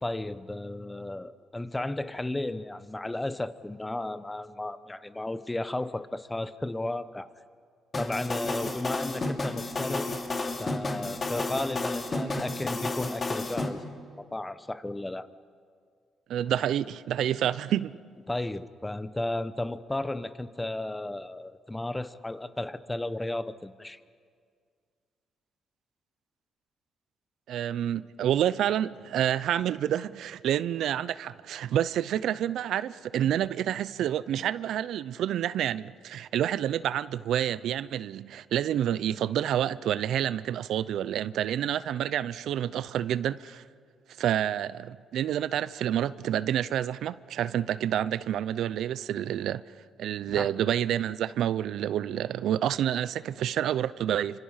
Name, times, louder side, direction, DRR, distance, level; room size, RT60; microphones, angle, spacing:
voice 1, 0.0-7.3 8.0-10.1 10.6-13.8 14.2-15.3 18.3-24.0 50.3-50.5, left 2 dB, 15° left, 1.0 m, -34 dB
sound 1, 7.9-13.7, left 3 dB, 35° left, 3.0 m, -31 dB
voice 2, 16.3-17.9 27.5-43.6 44.2-49.6 50.0-54.4, right 10 dB, 75° right, 0.6 m, -28 dB
30.0 x 26.0 x 5.7 m
cardioid pair, 90°, 0 cm